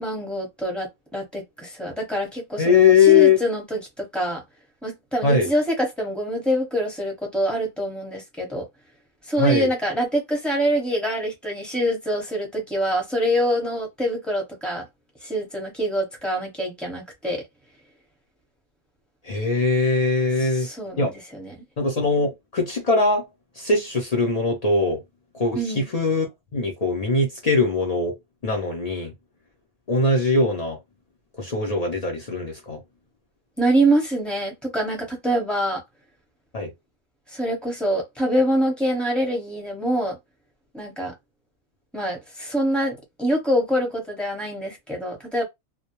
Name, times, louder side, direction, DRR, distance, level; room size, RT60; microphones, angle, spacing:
voice 1, 0.0-4.4 4.8-8.7 9.3-14.8 15.2-17.4 20.4-21.6 25.5-25.9 33.6-35.8 37.3-40.2 40.7-41.1 41.9-45.4, right 1 dB, ahead, 0.8 m, -25 dB
voice 2, 2.6-3.4 5.2-5.5 9.4-9.7 19.2-20.7 21.0-21.1 21.8-23.3 23.6-25.0 25.3-26.3 26.5-28.2 28.4-29.1 29.9-30.8 31.4-32.8 36.5-36.7, left 4 dB, 65° left, 0.3 m, -21 dB
2.2 x 2.1 x 2.9 m
omnidirectional pair, 1.4 m